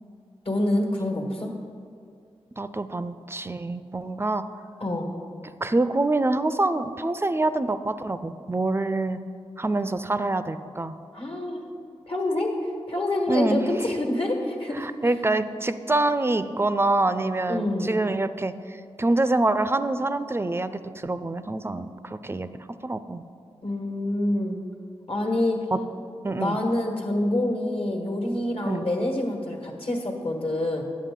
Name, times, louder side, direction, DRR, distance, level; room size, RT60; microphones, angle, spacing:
voice 1, 0.4-1.5 4.8-5.1 11.1-11.7 12.1-12.5 12.9-14.9 17.5-18.0 23.6-24.6 25.1-25.6 26.3-30.8, left 1 dB, 60° left, 1 dB, 1.5 m, -26 dB
voice 2, 2.6-4.6 5.6-9.2 9.6-11.0 13.3-13.7 14.7-22.5 22.8-23.2 25.7-25.8 26.2-26.6 28.6-28.9, right 2 dB, 20° right, 12 dB, 0.4 m, -26 dB
9.3 x 7.6 x 3.7 m, 2.4 s
cardioid pair, 45°, 11 cm